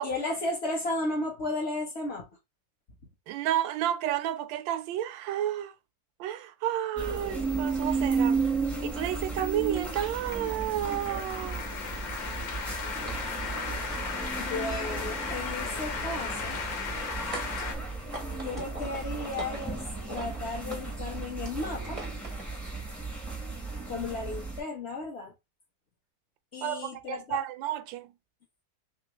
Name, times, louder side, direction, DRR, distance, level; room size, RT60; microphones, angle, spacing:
voice 1, 0.0-2.3 14.4-16.6 17.6-17.7 18.4-19.8 20.1-22.0 23.9-25.3 26.5-27.4, left 2 dB, 50° left, 0.8 m, -34 dB
voice 2, 3.3-5.7 6.2-8.5 8.8-11.6 26.6-28.2, right 11 dB, 80° right, 1.3 m, -31 dB
sound 1, 7.0-24.6, right 4 dB, ahead, 0.7 m, -34 dB
sound 2, 7.8-8.0 8.2-8.3 8.9-9.2 9.5-9.8 11.0-11.1 11.8-12.6 13.1-13.2 14.9-15.6 16.9-17.6 18.0-22.8, right 3 dB, 40° right, 0.5 m, -44 dB
sound 3, 8.5-17.8, left 5 dB, 80° left, 1.5 m, -37 dB
3.4 x 3.0 x 2.9 m
omnidirectional pair, 2.0 m